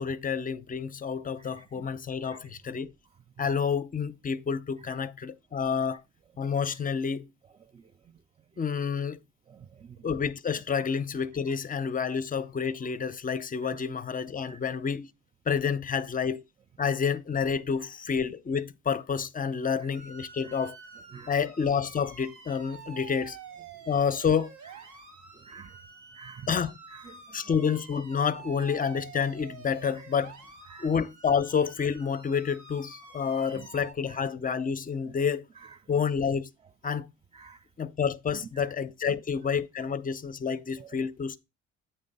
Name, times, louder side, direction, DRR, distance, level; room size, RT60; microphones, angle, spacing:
voice 1, 0.0-2.9 3.4-6.0 6.4-7.3 8.6-9.2 10.0-15.1 15.5-16.4 16.8-20.8 21.3-23.4 23.9-24.5 26.5-26.8 27.3-30.3 30.8-35.5 35.9-36.5 36.8-37.1 37.8-41.4, left 6 dB, 30° left, 0.5 m, -29 dB
voice 2, 1.4-1.9 2.2-2.4 7.7-7.8 9.5-10.0 14.5-14.6 21.1-21.3 25.5-25.8 26.1-26.5 26.9-27.0 30.7-30.9 33.6-33.7 34.1-34.2 37.3-37.6 40.8-40.9, right 6 dB, 20° right, 0.3 m, -48 dB
sound 1, 19.9-33.9, right 6 dB, 70° right, 1.4 m, -48 dB
8.5 x 3.2 x 5.3 m
cardioid pair, 90°, 30 cm